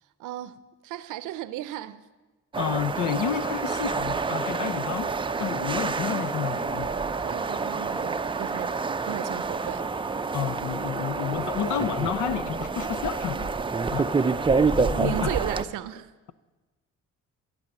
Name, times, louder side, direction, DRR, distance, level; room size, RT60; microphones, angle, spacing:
voice 1, 0.2-2.0 7.2-8.7 9.0-9.9 14.8-16.1, right 12 dB, 85° right, 0.6 m, -35 dB
sound 1, 2.5-15.6, right 4 dB, 15° right, 0.5 m, -28 dB
voice 2, 2.6-5.1 5.4-7.1 10.3-13.6 13.9-14.4 14.7-15.4, left 10 dB, 75° left, 0.6 m, -31 dB
15.0 x 5.5 x 8.9 m
cardioid pair, 90°, 30 cm